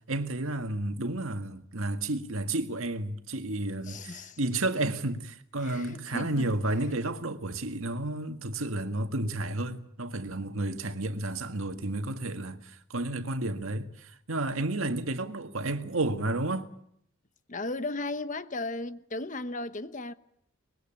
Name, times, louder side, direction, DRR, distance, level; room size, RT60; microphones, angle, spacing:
voice 1, 0.0-16.7, right 2 dB, 80° right, 1.8 m, -31 dB
voice 2, 3.8-4.4 5.6-6.5 6.9-7.0 17.5-20.1, left 2 dB, 35° left, 1.0 m, -36 dB
24.5 x 21.5 x 8.9 m
head